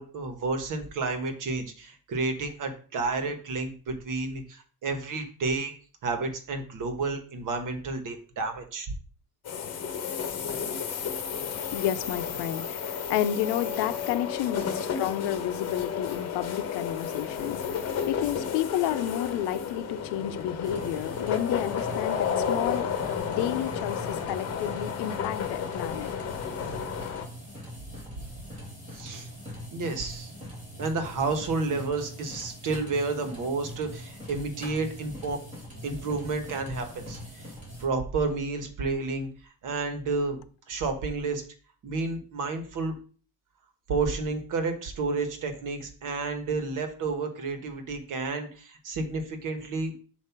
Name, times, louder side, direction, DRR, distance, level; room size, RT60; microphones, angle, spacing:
voice 1, 0.0-5.7 6.0-8.9 28.2-28.3 28.9-29.3 29.7-30.3 30.8-35.4 35.8-37.5 37.8-39.3 39.6-40.4 40.7-41.4 41.8-42.9 43.9-49.9, right 3 dB, 50° right, 1.4 m, -31 dB
sound 1, 9.4-27.3, left 7 dB, 40° left, 1.1 m, -32 dB
voice 2, 11.7-17.6 18.1-22.9 23.3-26.1, left 11 dB, 90° left, 0.7 m, -31 dB
sound 2, 20.6-37.8, equal, 20° right, 2.7 m, -42 dB
7.5 x 2.7 x 5.9 m
cardioid pair, 150°, 39 cm